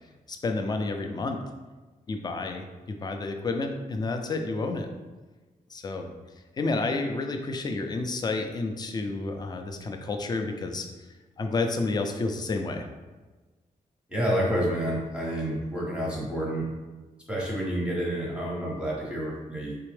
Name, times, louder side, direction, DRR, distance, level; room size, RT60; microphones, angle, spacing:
voice 1, 0.3-1.5 2.1-4.9 5.7-6.1 6.6-10.9 11.4-12.9, left 3 dB, 30° left, 5 dB, 0.4 m, -30 dB
voice 2, 14.1-16.7 17.3-19.7, right 1 dB, 5° right, -4 dB, 0.7 m, -29 dB
4.2 x 3.4 x 3.2 m, 1.3 s
wide cardioid pair, 180°, 15 cm